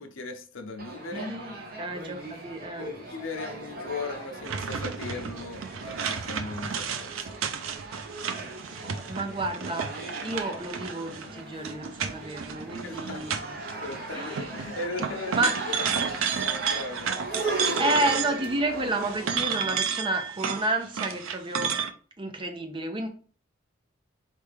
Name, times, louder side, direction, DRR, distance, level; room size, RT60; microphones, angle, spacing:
voice 1, 0.0-1.4 2.8-7.3 12.8-13.2 13.7-17.6, left 3 dB, 75° left, 0.7 m, -38 dB
sound 1, 0.8-19.4, right 2 dB, 45° right, 1.0 m, -38 dB
voice 2, 1.1-2.9 9.1-9.9 10.2-13.5 14.1-14.4 15.3-15.5 17.8-21.7 22.2-23.1, right 2 dB, 25° right, 0.6 m, -30 dB
sound 2, 4.4-14.0 14.3-18.6 18.9-21.9, right 6 dB, 80° right, 0.5 m, -32 dB
4.2 x 3.4 x 3.3 m
head